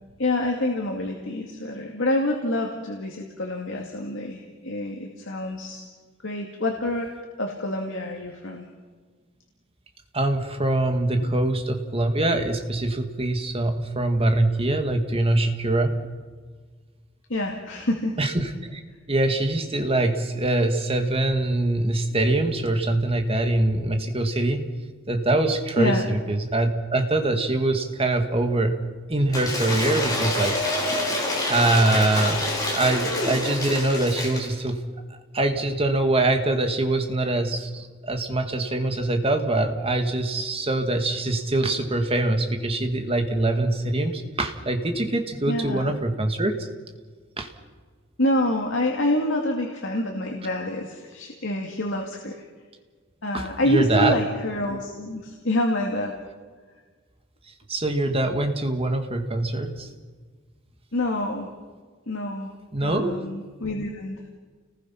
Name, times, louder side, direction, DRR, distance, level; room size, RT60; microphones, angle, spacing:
voice 1, 0.2-5.8 6.2-7.1 7.4-8.7 11.2-11.3 17.3-18.1 25.8-26.0 45.5-45.9 48.2-52.4 53.2-56.1 60.9-61.5 62.1-62.5 62.8-64.4, left 1 dB, 70° left, 1 dB, 2.3 m, -27 dB
voice 2, 10.1-16.0 18.2-18.8 19.1-24.7 25.1-28.8 29.1-31.1 31.5-34.8 35.3-46.7 47.4-47.5 53.3-54.2 57.7-59.9 62.7-63.2, right 2 dB, 30° right, 5 dB, 2.1 m, -24 dB
Cheering / Applause / Crowd, 29.3-34.5, left 1 dB, 20° left, 5.7 m, -27 dB
29.5 x 20.0 x 5.8 m, 1.5 s
head